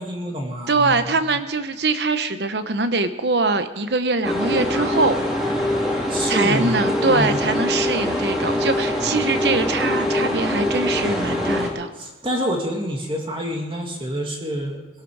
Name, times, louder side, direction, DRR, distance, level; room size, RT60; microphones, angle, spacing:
voice 1, 0.0-0.9 6.1-6.8 7.1-7.4 12.0-14.8, equal, 30° right, 1 dB, 2.1 m, -27 dB
voice 2, 0.7-5.1 6.2-11.9, right 3 dB, 70° right, 10 dB, 1.1 m, -23 dB
sound 1, 4.2-11.7, left 1 dB, ahead, 2.8 m, -23 dB
21.5 x 12.0 x 4.9 m, 1.2 s
head